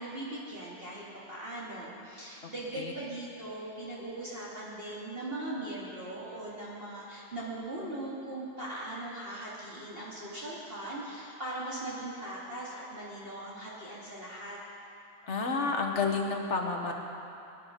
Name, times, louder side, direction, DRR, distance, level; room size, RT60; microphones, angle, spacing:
voice 1, 0.0-14.6, right 1 dB, 35° right, -7 dB, 2.4 m, -40 dB
voice 2, 15.2-16.9, left 4 dB, 45° left, 2 dB, 1.5 m, -30 dB
23.5 x 10.5 x 5.1 m, 2.7 s
omnidirectional pair, 1.9 m